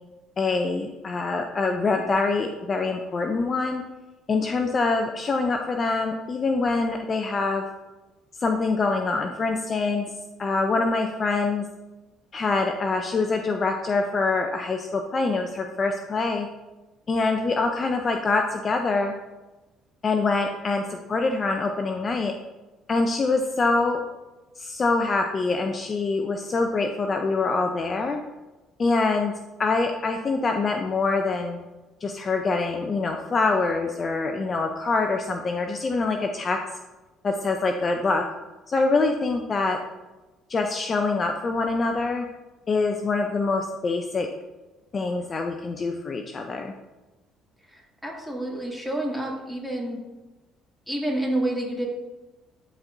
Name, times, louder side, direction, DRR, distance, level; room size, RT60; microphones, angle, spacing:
voice 1, 0.4-3.8 4.3-7.6 8.4-10.1 10.4-11.7 12.3-16.5 17.1-19.1 20.0-22.3 22.9-24.0 24.6-28.2 28.8-29.3 29.6-31.6 32.0-36.6 37.2-38.2 38.7-39.8 40.5-42.3 42.7-44.3 44.9-46.7, left 3 dB, 40° left, 4 dB, 0.6 m, -25 dB
voice 2, 48.0-50.0 50.9-51.9, right 1 dB, 5° left, -2 dB, 2.5 m, -28 dB
12.0 x 4.4 x 2.7 m, 1.1 s
hypercardioid pair, 65°, 0 cm